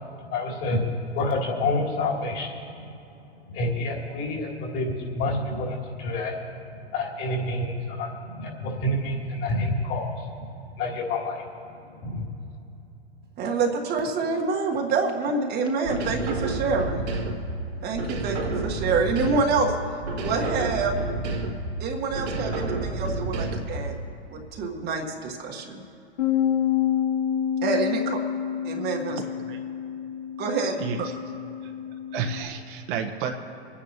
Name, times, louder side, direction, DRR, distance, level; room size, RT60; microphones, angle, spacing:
voice 1, 0.1-0.8 1.1-2.5 3.4-6.4 6.9-10.5 10.8-12.3, left 2 dB, 40° left, -1 dB, 3.1 m, -28 dB
voice 2, 13.4-17.0 17.8-19.8 20.2-21.0 21.8-24.0 24.3-25.8 27.6-28.2 28.6-29.2 30.4-30.8, right 4 dB, 30° right, 1 dB, 1.4 m, -27 dB
sound 1, 15.8-17.6 17.9-19.7 20.0-21.7 22.1-23.8, right 2 dB, 75° right, 2.5 m, -29 dB
Bass guitar, 26.2-32.4, left 9 dB, 75° left, 2.5 m, -28 dB
voice 3, 30.8-31.1 31.6-31.7 32.1-33.3, right 6 dB, 50° right, 3 dB, 1.3 m, -30 dB
26.5 x 9.8 x 3.0 m, 2.9 s
hypercardioid pair, 115°, 33 cm